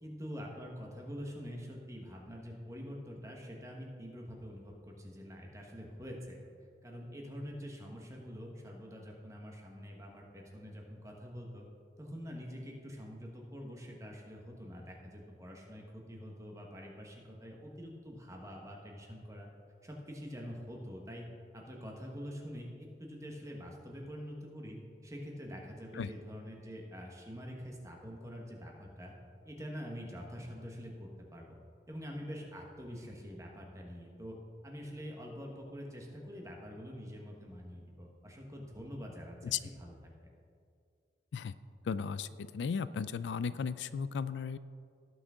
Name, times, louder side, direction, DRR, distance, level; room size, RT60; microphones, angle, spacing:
voice 1, 0.0-6.4 6.8-11.7 12.0-19.5 19.8-21.2 21.5-29.1 29.4-31.6 31.9-34.4 34.6-40.1, equal, 20° right, 0 dB, 1.3 m, -45 dB
voice 2, 41.9-42.3 42.5-44.6, left 6 dB, 85° left, 15 dB, 0.3 m, -35 dB
17.5 x 6.1 x 3.7 m, 2.2 s
head